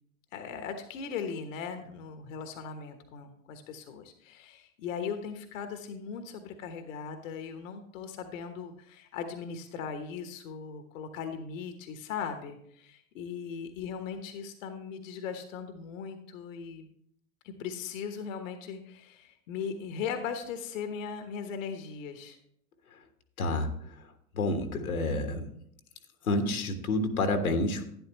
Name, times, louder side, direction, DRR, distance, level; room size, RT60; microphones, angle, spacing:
voice 1, 0.3-16.9 17.4-22.4, left 6 dB, 65° left, 7 dB, 1.2 m, -38 dB
voice 2, 23.4-23.7 24.0-24.1 24.3-25.4 26.2-27.9, left 2 dB, 85° left, 6 dB, 1.4 m, -29 dB
11.5 x 10.0 x 3.0 m, 0.70 s
hypercardioid pair, 90°, 43 cm